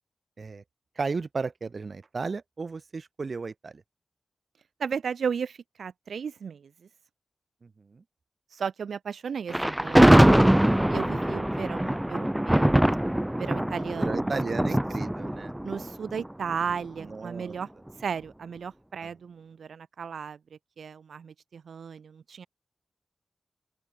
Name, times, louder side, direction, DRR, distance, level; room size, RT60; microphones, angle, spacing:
voice 1, 1.0-3.7 7.6-8.0 14.0-15.5 17.0-17.5, right 4 dB, 55° right, 1.9 m, -34 dB
voice 2, 4.8-6.7 8.5-10.6 10.9-12.7 13.4-14.3 15.6-17.7 18.0-20.4 20.8-22.5, right 6 dB, 85° right, 1.3 m, -35 dB
Thunder, 9.5-16.7, right 1 dB, 10° right, 2.4 m, -22 dB
open air
cardioid pair, 75°, 0 cm